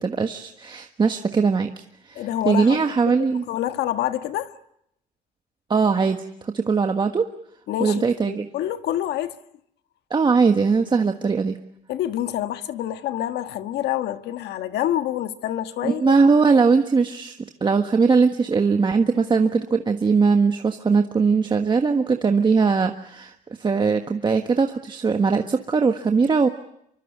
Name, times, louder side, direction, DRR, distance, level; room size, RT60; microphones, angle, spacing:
voice 1, 0.0-3.4 5.7-7.3 7.8-8.5 10.1-11.6 15.8-17.4 17.6-26.5, right 5 dB, 25° right, 1.5 m, -20 dB
voice 2, 2.1-3.2 3.5-4.5 7.7-9.4 11.9-16.2, left 12 dB, 80° left, 1.6 m, -27 dB
26.5 x 24.0 x 8.1 m
cardioid pair, 110°, 17 cm